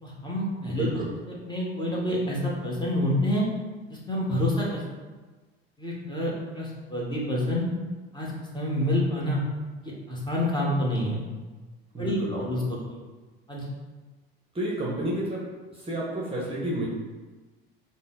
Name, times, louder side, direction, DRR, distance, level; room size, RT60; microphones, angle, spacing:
voice 1, 0.0-1.0 1.5-3.4 3.9-4.8 5.8-7.7 8.1-8.3 8.5-9.4 9.8-11.2 12.0-12.8 13.5-13.6, left 1 dB, 15° left, -4 dB, 1.1 m, -27 dB
voice 2, 0.7-1.1 11.9-12.4 14.5-15.4 15.7-16.9, right 1 dB, 20° right, -4 dB, 0.8 m, -30 dB
3.9 x 2.1 x 3.7 m, 1.3 s
hypercardioid pair, 65°, 30 cm